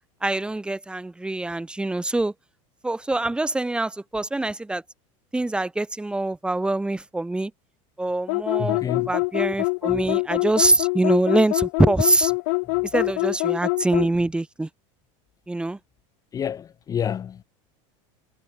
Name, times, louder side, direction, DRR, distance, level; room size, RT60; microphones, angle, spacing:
voice 1, 0.2-2.3 2.8-4.8 5.3-7.5 8.0-8.8 9.1-12.3 12.9-14.7 15.5-15.8, right 2 dB, 5° right, 1.5 m, -24 dB
sound 1, 8.3-14.1, left 31 dB, 60° left, 1.0 m, -24 dB
voice 2, 8.6-9.1 16.3-17.4, left 8 dB, 20° left, 0.7 m, -28 dB
supercardioid pair, 140°, 16 cm